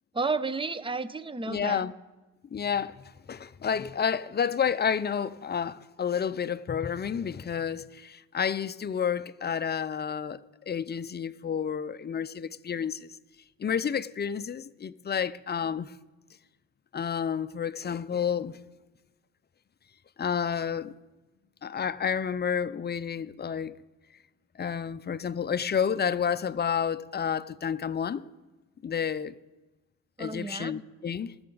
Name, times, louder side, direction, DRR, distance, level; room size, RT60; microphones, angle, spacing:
voice 1, 0.1-1.9 30.2-30.8, right 4 dB, 15° right, 0.7 m, -32 dB
voice 2, 1.5-1.9 2.5-13.1 13.6-15.9 16.9-18.6 20.2-20.9 21.6-23.7 24.6-28.2 28.8-29.3 30.2-31.3, left 7 dB, 30° left, 0.5 m, -30 dB
20.0 x 6.9 x 4.0 m
supercardioid pair, 60°, 35 cm